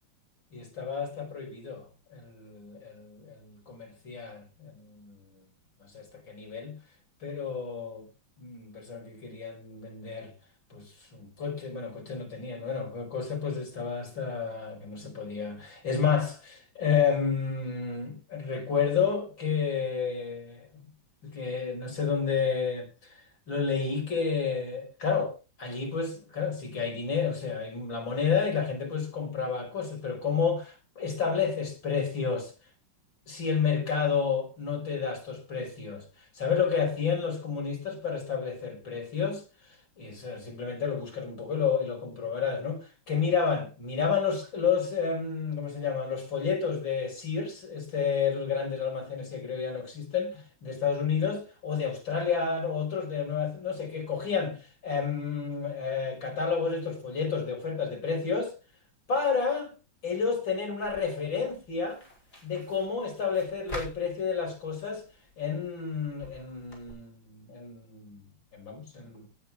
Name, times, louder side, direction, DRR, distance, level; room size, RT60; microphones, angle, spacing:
voice 1, 0.5-5.2 5.8-6.8 7.2-8.1 8.4-10.3 10.7-20.9 21.2-32.5 33.3-36.0 36.3-58.5 59.1-59.7 60.0-62.0 62.4-65.0 65.4-69.3, left 6 dB, 70° left, 6.1 m, -30 dB
sound 1, 60.8-66.9, equal, 30° left, 6.9 m, -47 dB
19.0 x 10.0 x 3.5 m
omnidirectional pair, 2.2 m